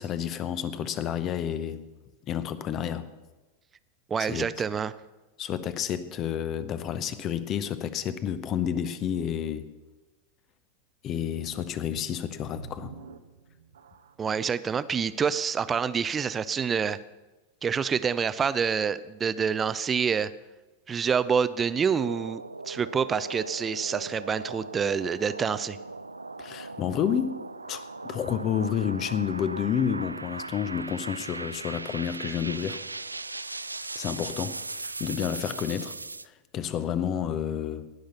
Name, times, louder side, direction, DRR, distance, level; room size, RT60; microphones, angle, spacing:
voice 1, 0.0-1.9 2.2-3.1 4.2-4.4 5.4-9.7 11.0-12.9 26.4-27.4 27.7-32.8 33.9-36.0 36.2-37.9, left 8 dB, 30° left, 0.8 m, -30 dB
voice 2, 4.1-4.9 14.2-17.0 17.6-20.3 20.9-25.8, right 6 dB, 20° right, 0.6 m, -27 dB
sound 1, 12.0-14.4 15.0-15.1 15.7-15.8, right 6 dB, 65° right, 0.9 m, -47 dB
sound 2, 21.7-36.3, right 3 dB, 80° right, 0.4 m, -39 dB
19.0 x 6.5 x 6.9 m
figure-of-eight pair, 90°, 0 cm